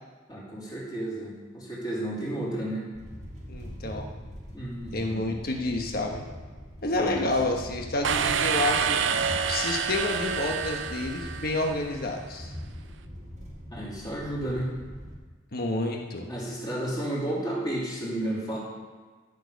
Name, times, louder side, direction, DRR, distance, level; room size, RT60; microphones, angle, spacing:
voice 1, 0.3-2.8 4.5-5.2 6.9-7.3 13.7-14.7 16.3-18.6, right 1 dB, 20° left, -6 dB, 2.9 m, -32 dB
sound 1, 2.9-15.2, equal, 35° right, 1.7 m, -42 dB
voice 2, 3.5-4.1 4.9-6.3 6.8-9.0 9.5-12.5 15.5-16.3, left 2 dB, 50° left, 2 dB, 1.3 m, -29 dB
sound 2, 8.0-11.8, right 7 dB, 65° right, 0.5 m, -27 dB
12.0 x 6.6 x 5.3 m, 1.4 s
head